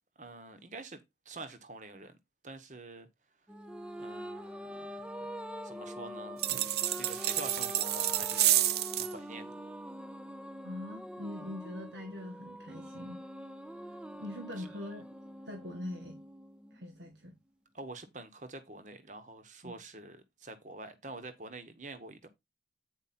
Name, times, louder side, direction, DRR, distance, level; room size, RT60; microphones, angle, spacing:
voice 1, 0.2-2.2 2.4-3.1 4.0-5.1 5.6-6.4 6.9-8.4 8.9-9.5 14.6-14.9 17.7-22.3, right 2 dB, 45° right, 1.1 m, -47 dB
sound 1, 3.5-17.1, equal, 5° right, 0.4 m, -44 dB
sound 2, 6.4-9.1, right 13 dB, 65° right, 0.5 m, -29 dB
voice 2, 10.6-13.2 14.2-15.1 15.5-16.2 16.7-17.4 19.6-19.8, left 1 dB, 85° right, 1.7 m, -42 dB
9.0 x 4.7 x 4.2 m
head